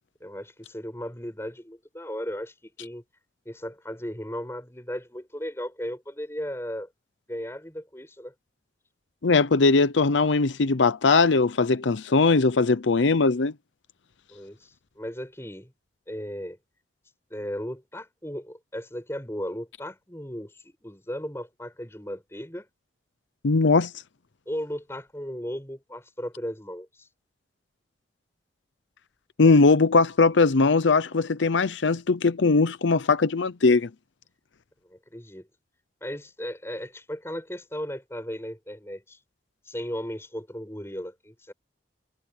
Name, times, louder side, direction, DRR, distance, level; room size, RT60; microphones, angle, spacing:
voice 1, 0.2-3.0 3.5-6.9 7.3-8.3 14.3-15.7 16.1-16.6 17.3-22.7 24.5-27.1 34.8-35.5 36.0-39.2 39.7-41.5, equal, 15° left, 7.1 m, -36 dB
voice 2, 9.2-13.5 23.4-23.9 29.4-33.9, left 4 dB, 90° left, 0.7 m, -20 dB
head